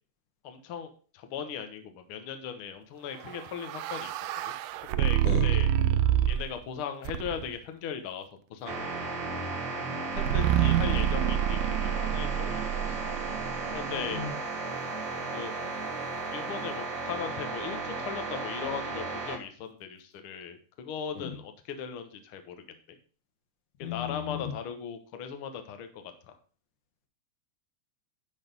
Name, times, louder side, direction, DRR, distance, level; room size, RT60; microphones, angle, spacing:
voice 1, 0.4-4.5 4.8-5.7 6.3-8.2 8.5-9.0 10.1-13.1 13.7-14.2 15.3-15.5 16.3-22.5 22.9-23.0 23.9-26.1, left 7 dB, 60° left, 7 dB, 1.6 m, -38 dB
sound 1, 3.3-6.6 7.0-7.6 10.2-14.3, right 11 dB, 80° right, 1.8 m, -27 dB
sound 2, 8.7-19.4, right 3 dB, 55° right, 1.4 m, -35 dB
voice 2, 13.9-14.3 21.1-21.3 23.8-24.5, left 8 dB, 90° left, 2 dB, 3.0 m, -35 dB
11.0 x 4.0 x 5.2 m, 0.40 s
omnidirectional pair, 3.4 m